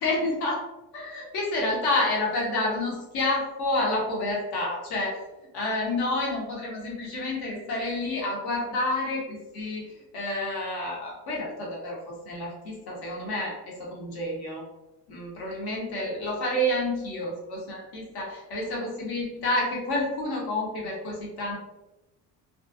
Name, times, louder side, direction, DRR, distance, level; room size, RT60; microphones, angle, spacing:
voice 1, 0.0-0.6 0.9-5.2 5.5-14.6 15.1-21.6, left 1 dB, 65° left, -3 dB, 1.1 m, -29 dB
2.5 x 2.2 x 2.4 m, 1.0 s
cardioid pair, 110°, 41 cm